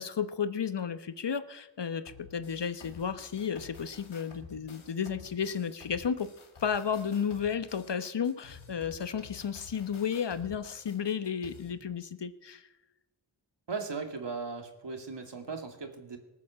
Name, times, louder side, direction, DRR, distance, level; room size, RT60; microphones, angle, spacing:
voice 1, 0.0-6.3 6.6-12.7, left 7 dB, 60° left, 12 dB, 1.0 m, -33 dB
sound 1, 2.1-11.7, left 5 dB, 85° left, 2.2 m, -52 dB
voice 2, 13.7-16.2, right 4 dB, 60° right, 5 dB, 2.5 m, -37 dB
19.0 x 8.4 x 7.5 m, 1.1 s
cardioid pair, 50°, 48 cm